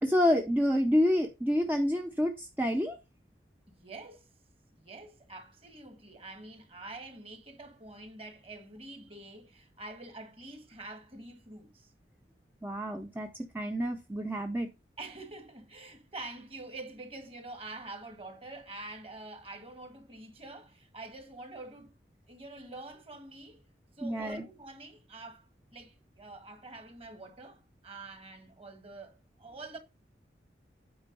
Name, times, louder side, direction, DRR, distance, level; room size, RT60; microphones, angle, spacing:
voice 1, 0.0-3.0 12.6-14.7 24.0-24.4, equal, 10° right, 0.5 m, -28 dB
voice 2, 3.8-4.3 4.7-11.9 15.0-21.9 22.3-23.6 24.0-29.8, right 2 dB, 30° right, 1.7 m, -46 dB
8.8 x 4.5 x 5.3 m
head